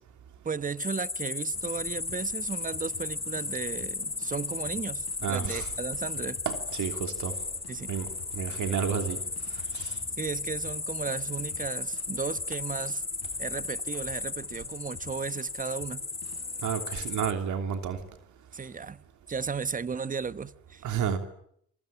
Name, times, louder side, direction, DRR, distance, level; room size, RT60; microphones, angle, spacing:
voice 1, 0.4-6.4 7.7-7.9 10.2-13.0 13.4-16.0 18.5-19.0 19.3-20.8, right 5 dB, 25° right, 15 dB, 1.2 m, -35 dB
sound 1, 0.8-17.3, left 3 dB, 20° left, 1.8 m, -35 dB
sound 2, 1.5-16.7, left 7 dB, 55° left, 5.0 m, -51 dB
voice 2, 5.2-5.7 6.4-7.3 7.9-8.1 8.3-9.2 9.7-9.9 16.6-18.0 20.8-21.2, right 8 dB, 75° right, 7 dB, 3.2 m, -30 dB
26.5 x 23.5 x 8.9 m, 0.70 s
cardioid pair, 90°, 30 cm